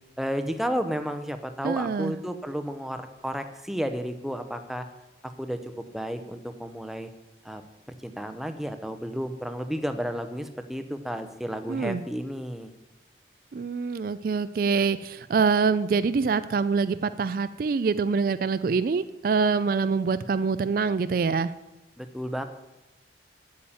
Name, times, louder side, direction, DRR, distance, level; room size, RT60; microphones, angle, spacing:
voice 1, 0.2-4.8 5.2-7.1 7.4-7.6 8.0-12.7 22.0-22.4, equal, ahead, 8 dB, 0.7 m, -32 dB
voice 2, 1.6-2.2 11.7-12.0 13.5-21.5, right 5 dB, 50° right, 13 dB, 0.3 m, -25 dB
8.5 x 7.3 x 8.8 m, 1.0 s
head